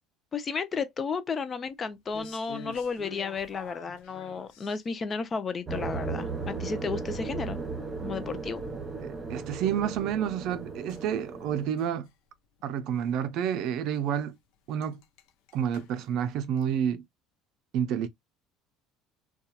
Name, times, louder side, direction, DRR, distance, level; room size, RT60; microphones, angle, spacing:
voice 1, 0.3-7.6 8.0-8.6, left 5 dB, 30° left, 0.5 m, -33 dB
sound 1, 2.1-5.1 10.9-12.1 12.4-12.7 13.0-13.1 13.6-13.7 13.9-14.0 14.3-14.4 14.7-16.7, left 8 dB, 75° left, 0.5 m, -48 dB
sound 2, 5.7-11.7, right 4 dB, 20° right, 0.9 m, -36 dB
voice 2, 9.0-12.1 12.6-14.4 14.7-15.0 15.5-17.0 17.7-18.1, right 9 dB, 60° right, 0.4 m, -29 dB
2.8 x 2.3 x 2.3 m
supercardioid pair, 115°, 0 cm